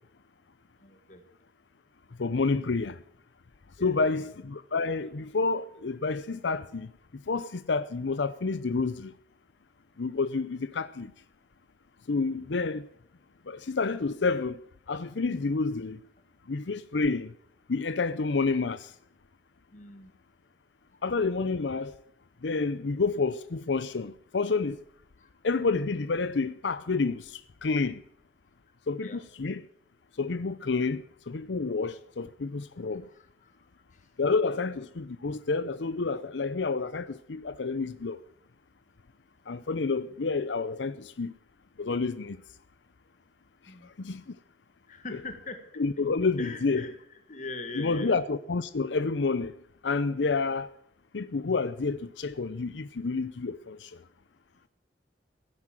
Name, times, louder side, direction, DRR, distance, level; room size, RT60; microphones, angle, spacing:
voice 1, 0.8-1.2 3.8-4.3 19.7-20.1 20.9-21.0 25.2-25.3 29.0-29.2 33.1-34.1 43.6-43.9 44.9-45.6 46.4-47.0 47.3-48.2, left 2 dB, 45° left, 1.7 m, -42 dB
voice 2, 2.2-3.0 3.8-6.9 7.3-9.1 10.0-11.1 12.1-12.9 13.5-14.6 14.9-16.0 16.5-17.3 17.7-18.9 21.0-21.9 22.4-24.8 25.4-28.0 28.9-29.6 30.2-33.1 34.2-38.2 39.5-41.3 41.8-42.4 44.0-44.2 45.8-46.9 47.8-49.5 49.8-50.7 51.1-54.0, left 4 dB, 85° left, 0.6 m, -29 dB
16.0 x 9.7 x 7.5 m
head